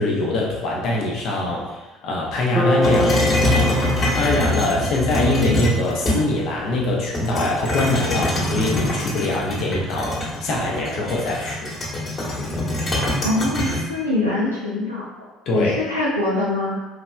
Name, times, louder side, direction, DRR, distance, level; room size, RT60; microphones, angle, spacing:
voice 1, 0.0-3.7 4.1-11.7 15.5-15.8, left 2 dB, 50° left, -2 dB, 0.8 m, -23 dB
Bass guitar, 2.6-6.6, left 1 dB, 5° left, 0.5 m, -26 dB
sound 1, 2.8-6.5 7.1-13.8, left 1 dB, 35° left, 1.4 m, -24 dB
voice 2, 13.2-15.3 15.5-16.8, left 2 dB, 90° left, -8 dB, 0.6 m, -24 dB
4.9 x 3.1 x 2.4 m, 1.1 s
figure-of-eight pair, 55°, 0 cm